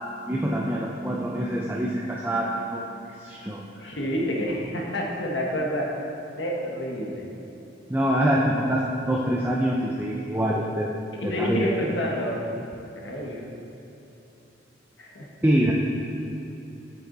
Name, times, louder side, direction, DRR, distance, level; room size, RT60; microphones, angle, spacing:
voice 1, 0.3-2.9 3.2-3.9 7.9-10.9 11.2-11.7 15.4-15.7, right 1 dB, 10° right, -3 dB, 0.4 m, -25 dB
voice 2, 3.8-5.9 6.4-7.3 11.1-12.4 13.0-13.5 15.0-15.3, equal, 70° left, -2 dB, 1.3 m, -28 dB
8.2 x 7.9 x 3.9 m, 3.0 s
head